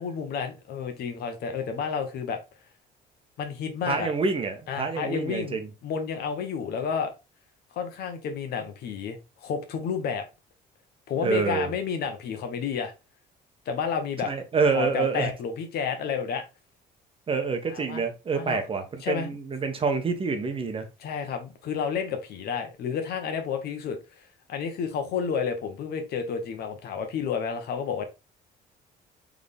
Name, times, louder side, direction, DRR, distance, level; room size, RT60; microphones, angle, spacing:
voice 1, 0.0-2.4 3.4-4.1 4.7-7.1 7.7-10.2 11.1-12.9 13.7-14.3 14.7-16.4 17.7-18.0 18.3-18.6 19.0-19.3 21.0-28.0, left 6 dB, 70° left, 1.2 m, -31 dB
voice 2, 3.9-5.7 11.2-11.7 14.2-15.3 17.3-20.9, right 4 dB, 35° right, 1.0 m, -27 dB
3.9 x 3.6 x 3.5 m
cardioid pair, 110°, 17 cm